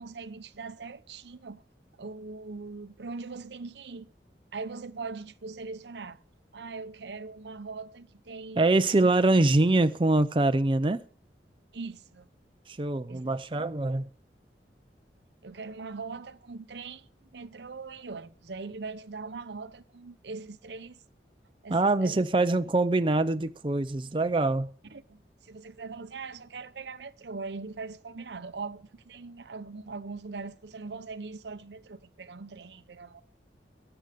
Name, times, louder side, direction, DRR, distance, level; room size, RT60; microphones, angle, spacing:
voice 1, 0.0-1.6 2.0-4.1 4.5-6.2 6.5-8.6 11.7-12.3 13.1-13.3 15.4-21.0 21.6-22.3 24.9-33.2, right 4 dB, 75° right, 0.7 m, -41 dB
voice 2, 8.6-11.0 12.7-14.1 21.7-24.7, right 2 dB, 30° right, 0.6 m, -24 dB
21.5 x 8.0 x 5.1 m
head